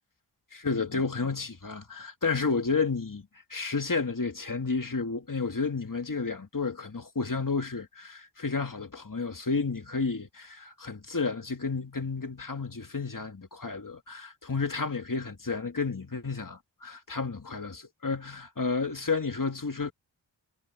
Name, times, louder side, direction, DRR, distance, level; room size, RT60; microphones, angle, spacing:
voice 1, 0.5-19.9, left 4 dB, 45° left, 2.4 m, -31 dB
wide cardioid pair, 60°, 46 cm